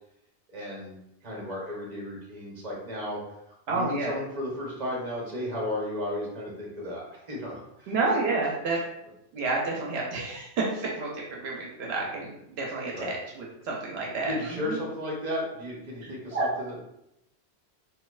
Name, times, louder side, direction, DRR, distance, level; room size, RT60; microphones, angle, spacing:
voice 1, 0.5-3.2 3.7-7.9 12.9-13.2 14.3-16.8, left 1 dB, 40° right, -3 dB, 1.0 m, -34 dB
voice 2, 3.7-4.1 7.9-8.8 9.3-14.8 16.0-16.5, right 3 dB, 80° right, -2 dB, 0.9 m, -30 dB
4.1 x 2.6 x 2.4 m, 0.83 s
omnidirectional pair, 1.1 m